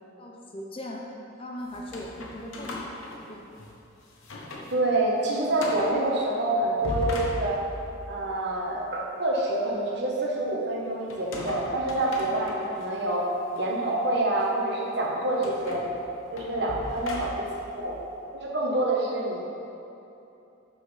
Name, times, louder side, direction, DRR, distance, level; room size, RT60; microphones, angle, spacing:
voice 1, 0.2-1.0 1.4-3.0 3.3-3.6 12.3-12.4 16.4-16.7 18.6-18.9, left 1 dB, 25° left, -1 dB, 0.6 m, -39 dB
sound 1, 1.7-3.8 4.2-4.8 5.1-5.2 5.6-6.0 6.6-7.9 11.1-12.9 13.5-13.7 15.4-17.7, left 1 dB, 80° left, 1.0 m, -37 dB
voice 2, 4.7-7.6 8.1-13.2 13.6-15.8 16.3-17.5 17.8-18.0 18.3-19.4, right 2 dB, 55° right, -3 dB, 1.2 m, -27 dB
5.9 x 5.9 x 5.6 m, 2.8 s
head